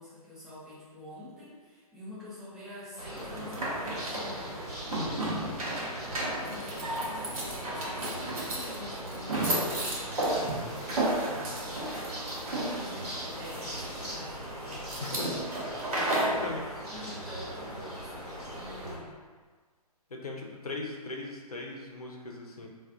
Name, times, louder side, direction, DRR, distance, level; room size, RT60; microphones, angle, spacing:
voice 1, 0.0-5.7 6.0-15.5 15.9-19.2, left 1 dB, ahead, -10 dB, 0.4 m, -47 dB
sound 1, 3.0-19.0, equal, 80° right, 1.1 m, -40 dB
sound 2, 3.2-16.4, right 1 dB, 65° right, 0.8 m, -33 dB
voice 2, 4.9-5.2 15.0-15.3 16.2-16.6 20.1-22.7, left 2 dB, 70° left, 0 dB, 0.6 m, -38 dB
2.4 x 2.3 x 3.6 m, 1.5 s
figure-of-eight pair, 130°, 20 cm